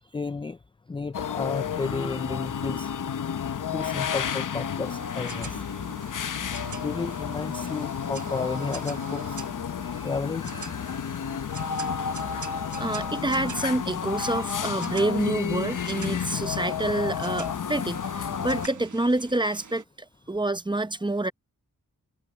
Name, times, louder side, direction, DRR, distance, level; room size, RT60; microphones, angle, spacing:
voice 1, 0.1-0.6 0.9-2.9 3.7-5.6 6.8-9.4 9.8-10.7, left 4 dB, 15° left, 0.3 m, -32 dB
sound 1, 1.1-18.7, left 8 dB, 65° left, 0.8 m, -31 dB
sound 2, 4.8-19.8, right 6 dB, 60° right, 1.2 m, -44 dB
voice 2, 12.5-19.8 20.3-21.3, right 2 dB, 15° right, 0.8 m, -27 dB
wide cardioid pair, 125°, 33 cm